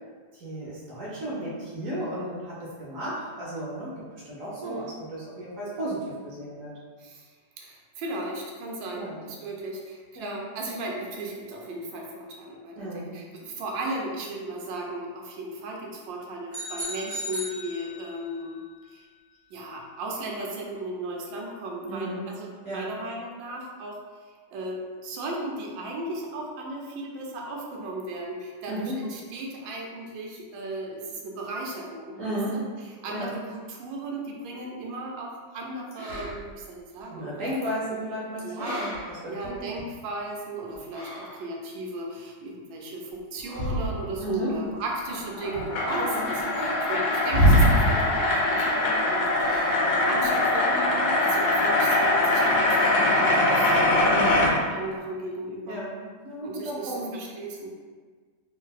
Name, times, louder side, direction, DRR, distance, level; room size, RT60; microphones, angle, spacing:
voice 1, 0.3-6.7 8.9-9.2 10.2-10.4 12.8-13.1 21.8-22.2 22.6-22.9 28.7-29.0 32.2-32.6 33.1-33.4 37.1-39.8 44.2-44.5 46.0-46.3 46.5-46.8 54.1-54.5 55.7-57.1, right 1 dB, 65° right, -6 dB, 0.8 m, -34 dB
voice 2, 4.6-4.9 7.0-7.3 7.6-18.6 18.9-19.1 19.5-24.0 24.5-32.6 33.0-36.4 36.7-37.3 38.4-38.9 39.2-54.1 54.7-55.8 56.4-57.7, right 2 dB, 85° right, -1 dB, 1.3 m, -36 dB
sound 1, 16.5-18.3, left 1 dB, 15° left, 0.7 m, -35 dB
sound 2, 35.9-36.6 37.5-37.6 38.4-40.0 40.7-41.4 43.4-44.3 45.5-45.6 47.3-48.1 49.4-49.9 50.2-50.6, equal, 65° left, 1.4 m, -25 dB
sound 3, 45.0-54.5, left 2 dB, 85° left, 1.4 m, -23 dB
3.2 x 2.6 x 2.3 m, 1.5 s
omnidirectional pair, 2.0 m